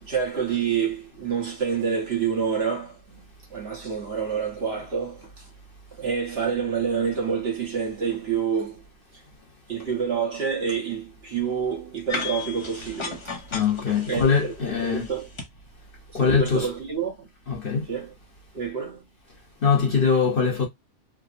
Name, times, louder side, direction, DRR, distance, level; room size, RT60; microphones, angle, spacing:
voice 1, 0.0-5.5 5.9-8.8 9.7-13.2 14.1-14.5 14.8-15.3 16.1-17.3 17.9-18.1 18.5-19.1, right 6 dB, 55° right, 1.2 m, -28 dB
sound 1, 12.1-15.5, left 4 dB, 30° left, 0.5 m, -35 dB
voice 2, 13.5-15.1 16.1-16.7 17.5-17.9 19.6-20.7, left 5 dB, 50° left, 0.9 m, -22 dB
3.4 x 2.0 x 2.4 m
omnidirectional pair, 1.4 m